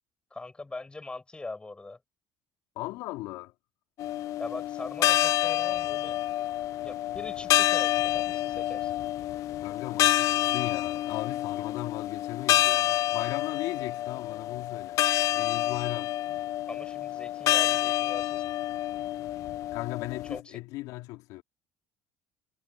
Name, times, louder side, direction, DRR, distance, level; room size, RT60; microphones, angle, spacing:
voice 1, 0.3-2.0 4.4-6.2 6.8-8.9 16.7-18.4 20.3-20.4, left 3 dB, 15° left, 5.3 m, -41 dB
voice 2, 2.8-3.5 9.6-15.0 15.3-16.2 19.7-21.4, left 19 dB, 80° left, 3.8 m, -37 dB
sound 1, 4.0-20.4, left 14 dB, 60° left, 0.3 m, -28 dB
cardioid pair, 100°, 6 cm